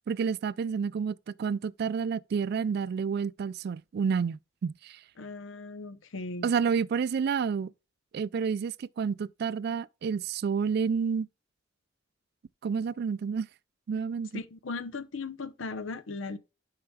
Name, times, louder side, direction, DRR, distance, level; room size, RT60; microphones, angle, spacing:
voice 1, 0.1-5.0 6.4-7.7 8.1-11.3 12.6-13.5 13.9-14.4, right 6 dB, 55° right, 0.3 m, -29 dB
voice 2, 5.2-6.5 14.3-16.4, left 3 dB, 75° left, 0.7 m, -37 dB
12.0 x 5.7 x 2.3 m
head